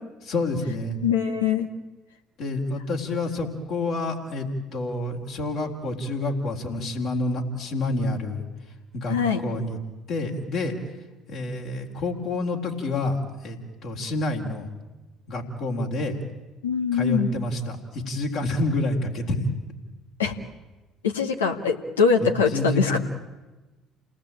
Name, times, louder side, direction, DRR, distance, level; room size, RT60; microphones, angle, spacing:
voice 1, 0.2-1.0 2.4-8.4 8.9-9.2 9.4-9.8 10.1-10.7 11.3-13.2 13.4-14.7 15.3-16.2 16.9-19.4 22.2-23.0, left 2 dB, 60° left, -1 dB, 3.9 m, -28 dB
voice 2, 1.0-1.7 9.1-9.4 16.6-17.3 20.2-20.3 21.0-23.0, left 6 dB, 85° left, 3 dB, 2.0 m, -22 dB
29.0 x 19.0 x 9.0 m, 1.2 s
hypercardioid pair, 55°, 0 cm